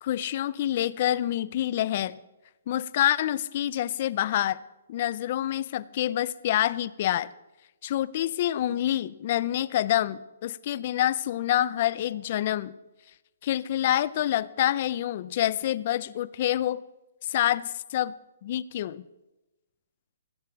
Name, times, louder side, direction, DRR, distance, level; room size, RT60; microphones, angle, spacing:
voice 1, 0.0-2.2 2.7-4.6 4.9-7.3 7.8-12.7 13.4-16.8 17.3-18.1 18.4-19.0, left 12 dB, 35° left, 19 dB, 0.4 m, -27 dB
15.5 x 8.0 x 5.8 m, 1.0 s
hypercardioid pair, 170°, 0 cm